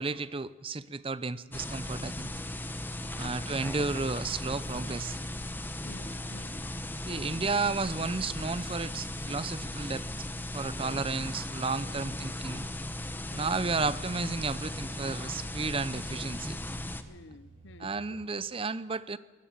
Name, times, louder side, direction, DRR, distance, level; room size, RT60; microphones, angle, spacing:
voice 1, 0.0-2.3 3.2-5.2 7.0-10.3 10.5-12.7 13.3-16.6 17.8-19.2, right 4 dB, 30° right, 0.6 m, -33 dB
sound 1, 1.5-17.0, left 1 dB, 10° left, 0.9 m, -37 dB
voice 2, 3.1-3.5 5.8-6.6 7.1-7.3 10.7-11.0 12.0-12.2 13.3-13.7 17.0-18.2, left 3 dB, 70° left, 0.7 m, -50 dB
sound 2, 3.5-10.5, right 1 dB, 45° right, 7.1 m, -64 dB
sound 3, 3.8-18.2, right 2 dB, 85° right, 8.0 m, -57 dB
20.0 x 19.5 x 7.2 m
head